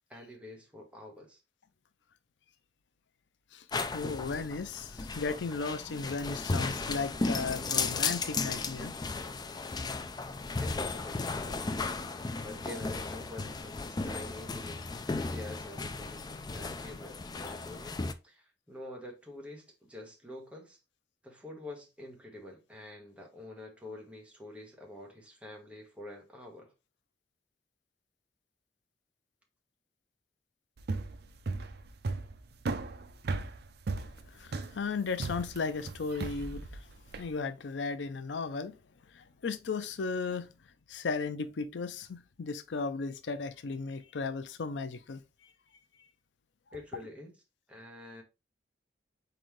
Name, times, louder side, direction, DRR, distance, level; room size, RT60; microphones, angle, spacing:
voice 1, 0.1-1.4 10.6-11.7 12.4-14.9 15.3-20.8 21.2-26.7 46.7-47.3 47.7-48.2, left 1 dB, 5° right, 1.3 m, -47 dB
voice 2, 3.5-8.9 34.3-36.9 37.2-38.8 39.1-40.5 40.9-45.5, left 4 dB, 85° left, 0.5 m, -36 dB
sound 1, 3.7-18.1, left 3 dB, 25° left, 0.4 m, -35 dB
sound 2, 30.8-37.3, right 3 dB, 65° right, 0.5 m, -36 dB
4.3 x 3.9 x 3.1 m
head